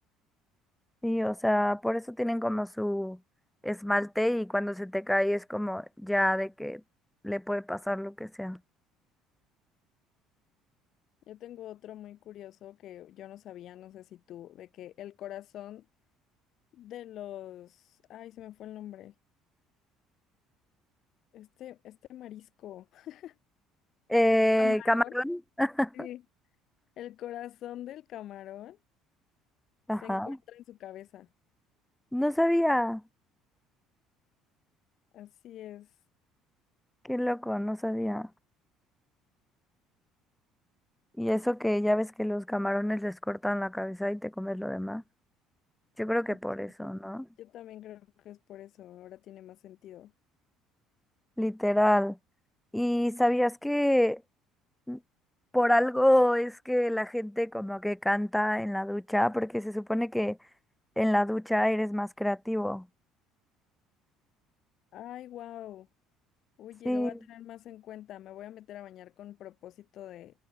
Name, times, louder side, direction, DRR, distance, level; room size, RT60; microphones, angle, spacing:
voice 1, 1.0-3.2 3.6-6.8 7.2-8.6 24.1-26.1 29.9-30.4 32.1-33.0 37.0-38.3 41.2-45.0 46.0-47.3 51.4-52.2 52.7-54.2 54.9-55.0 55.5-60.4 61.0-62.9 66.9-67.1, left 1 dB, 5° left, 2.0 m, -27 dB
voice 2, 11.3-15.9 16.7-19.1 21.3-23.4 24.6-25.1 25.9-26.2 27.0-28.8 30.0-31.3 35.1-36.0 46.3-46.4 46.8-46.9 47.4-50.1 64.9-65.9 66.6-70.3, left 12 dB, 60° left, 2.7 m, -45 dB
supercardioid pair, 80°, 0 cm